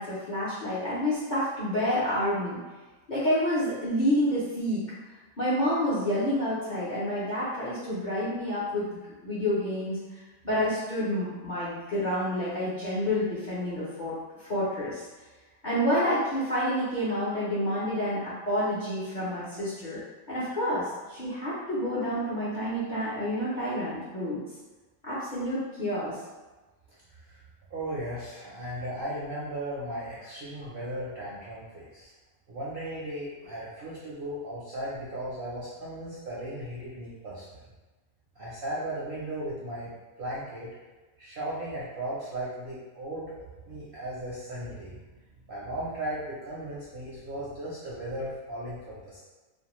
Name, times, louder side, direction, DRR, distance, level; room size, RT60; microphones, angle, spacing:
voice 1, 0.0-2.6 3.1-4.8 5.4-8.9 9.2-10.0 10.4-14.2 14.5-15.0 15.6-20.0 20.3-24.4 25.0-26.1, equal, 50° left, -10 dB, 0.6 m, -28 dB
voice 2, 27.7-32.1 32.5-37.6 38.4-39.9 40.2-40.7 41.2-45.0 45.5-49.3, right 1 dB, 60° right, -8 dB, 0.6 m, -36 dB
2.5 x 2.1 x 3.0 m, 1.2 s
omnidirectional pair, 1.4 m